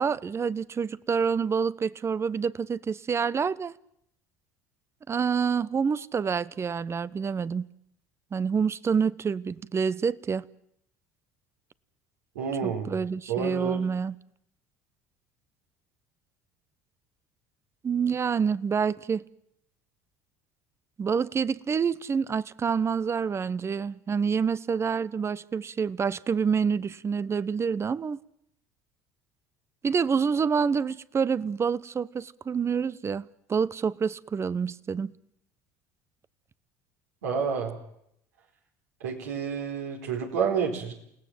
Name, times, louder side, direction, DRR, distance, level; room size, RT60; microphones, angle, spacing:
voice 1, 0.0-3.7 5.1-7.7 8.3-10.4 12.6-14.1 17.8-19.2 21.0-28.2 29.8-35.1, right 6 dB, 30° right, 1.0 m, -27 dB
voice 2, 12.3-12.9 13.3-13.8 37.2-37.8 39.0-40.9, right 6 dB, 80° right, 4.7 m, -29 dB
29.0 x 18.5 x 7.6 m
hypercardioid pair, 65°, 9 cm